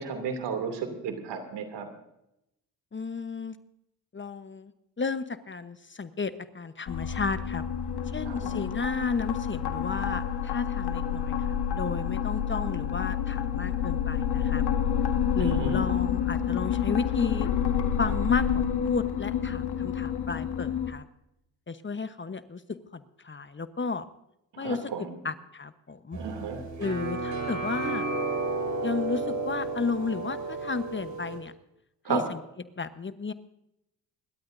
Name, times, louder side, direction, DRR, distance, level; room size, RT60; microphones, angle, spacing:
voice 1, 0.0-1.9 8.2-8.6 15.4-16.0 24.5-25.2 26.1-26.6 32.0-32.2, right 5 dB, 75° right, 6 dB, 2.8 m, -33 dB
voice 2, 2.9-3.5 4.1-4.7 5.0-7.6 8.1-14.6 15.3-17.5 18.0-21.1 21.7-22.6 22.9-24.0 24.6-26.2 26.8-28.1 28.8-31.5 32.1-32.4 32.8-33.3, left 4 dB, 30° left, 11 dB, 1.0 m, -33 dB
sound 1, 6.9-20.9, left 8 dB, 70° left, 1.6 m, -28 dB
sound 2, 26.1-31.4, right 3 dB, 45° right, 6.5 m, -32 dB
27.5 x 12.5 x 2.7 m, 0.83 s
supercardioid pair, 55°, 42 cm